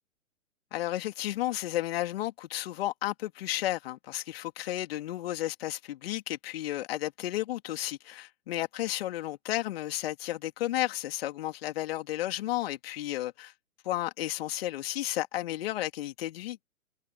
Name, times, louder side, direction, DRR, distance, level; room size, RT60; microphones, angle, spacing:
voice 1, 0.7-13.5 13.8-16.6, left 14 dB, 45° left, 3.2 m, -33 dB
figure-of-eight pair, 120°, 40 cm